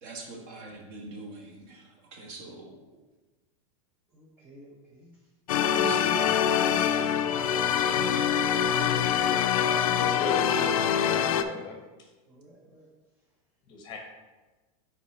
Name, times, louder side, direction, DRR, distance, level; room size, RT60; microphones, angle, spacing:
voice 1, 0.0-2.8 5.8-6.3 8.7-9.1, right 2 dB, 40° right, 1 dB, 1.2 m, -44 dB
voice 2, 4.1-5.2 5.6-7.3 8.1-8.6 12.3-12.9, right 2 dB, 10° right, -1 dB, 0.5 m, -46 dB
sound 1, 5.5-11.4, left 9 dB, 85° left, 0.5 m, -24 dB
voice 3, 9.9-11.8 13.7-14.0, left 2 dB, 25° left, 2 dB, 0.8 m, -35 dB
5.7 x 4.6 x 4.2 m, 1.2 s
supercardioid pair, 170°, 18 cm